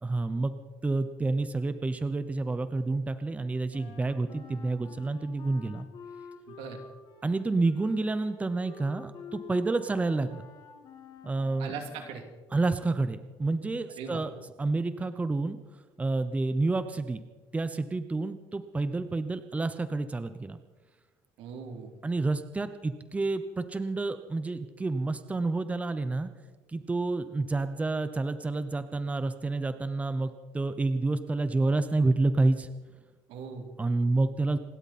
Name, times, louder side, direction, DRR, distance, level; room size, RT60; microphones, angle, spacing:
voice 1, 0.0-0.5 0.8-5.9 7.2-10.4 11.2-11.7 12.5-14.3 14.6-15.6 16.0-17.2 17.5-20.6 22.0-26.3 26.7-32.7 33.8-34.6, right 3 dB, 15° right, 11 dB, 0.8 m, -29 dB
Wind instrument woodwind instrument, 3.7-12.3, left 5 dB, 50° left, 2.8 m, -49 dB
voice 2, 11.6-12.2 14.0-14.2 21.4-22.0 33.3-33.7, right 5 dB, 80° right, 4 dB, 2.8 m, -39 dB
27.5 x 12.0 x 4.3 m, 1.2 s
cardioid pair, 120°, 9 cm